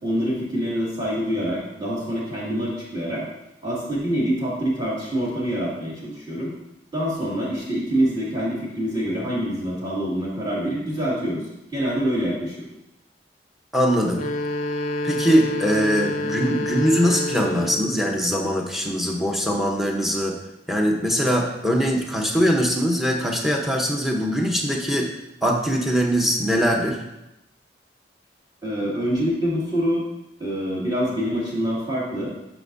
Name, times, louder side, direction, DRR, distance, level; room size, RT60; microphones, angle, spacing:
voice 1, 0.0-3.2 3.6-6.5 6.9-11.5 11.7-12.7 28.6-30.1 30.4-32.3, equal, 25° right, -6 dB, 2.2 m, -25 dB
voice 2, 13.7-14.3 15.0-20.4 20.7-25.1 25.4-27.0, equal, ahead, 0 dB, 0.8 m, -22 dB
sound 1, 14.1-18.1, left 1 dB, 40° left, 0.5 m, -28 dB
9.7 x 5.9 x 2.6 m, 0.89 s
head